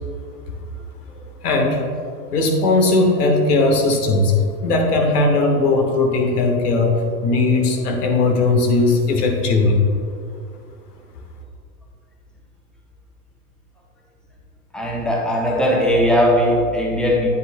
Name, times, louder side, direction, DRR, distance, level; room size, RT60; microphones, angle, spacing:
voice 1, 1.4-1.8 2.3-4.3 4.6-6.9 7.2-9.8, left 2 dB, 75° left, 2 dB, 1.5 m, -18 dB
voice 2, 14.7-17.3, equal, ahead, -2 dB, 1.0 m, -18 dB
9.3 x 8.3 x 2.2 m, 2.4 s
hypercardioid pair, 110°, 46 cm